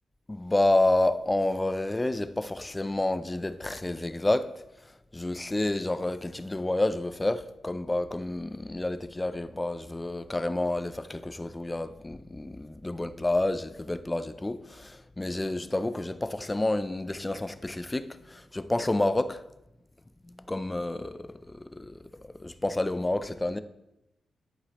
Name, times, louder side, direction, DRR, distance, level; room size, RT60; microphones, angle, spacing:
voice 1, 0.3-4.5 5.1-19.4 20.5-22.0 22.4-23.6, left 2 dB, 15° left, 0.4 m, -29 dB
11.5 x 4.8 x 3.0 m
cardioid pair, 95°, 0 cm